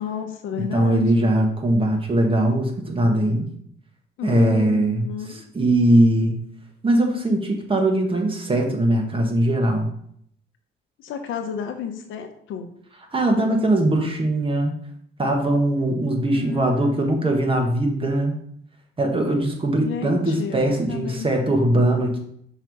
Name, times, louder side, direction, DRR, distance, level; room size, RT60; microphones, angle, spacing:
voice 1, 0.0-1.3 4.2-5.4 11.0-12.7 16.3-17.2 19.7-21.5, left 8 dB, 80° left, 5 dB, 0.9 m, -32 dB
voice 2, 0.7-3.5 4.2-6.4 6.8-9.9 13.1-14.7 15.2-18.3 19.0-22.2, right 1 dB, 25° right, 2 dB, 1.4 m, -21 dB
5.7 x 3.1 x 5.3 m, 0.67 s
cardioid pair, 90°, 20 cm